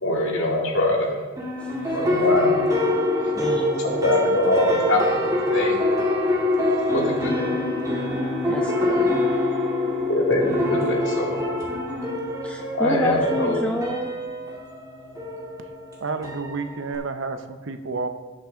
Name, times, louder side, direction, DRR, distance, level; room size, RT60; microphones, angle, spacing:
voice 1, 0.0-1.2 1.9-2.6 3.2-3.3 3.8-5.8 6.9-7.5 10.0-11.4 12.7-13.7, left 1 dB, 60° left, 2.1 m, -23 dB
sound 1, 1.4-17.0, left 1 dB, 15° right, 1.8 m, -25 dB
voice 2, 3.3-4.2 8.5-9.2 12.4-14.2, left 1 dB, 5° left, 0.4 m, -29 dB
voice 3, 16.0-18.1, right 4 dB, 60° right, 0.8 m, -30 dB
17.5 x 5.8 x 3.8 m
head